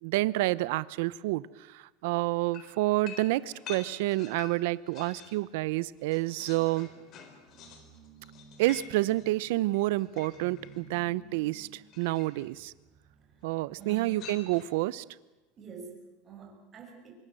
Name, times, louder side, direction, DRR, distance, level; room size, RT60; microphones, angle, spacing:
voice 1, 0.0-6.9 8.6-12.7 13.4-15.0, right 18 dB, 70° right, 19 dB, 0.7 m, -29 dB
sound 1, 2.5-5.4 5.8-10.8 11.9-12.5 13.8-14.9, left 7 dB, 40° left, 4.1 m, -48 dB
sound 2, 4.7-14.8, right 2 dB, 40° right, 7.7 m, -57 dB
voice 2, 13.8-14.2 15.6-17.1, right 6 dB, 25° right, 2 dB, 6.4 m, -46 dB
25.0 x 23.5 x 7.7 m, 1.1 s
supercardioid pair, 150°, 0 cm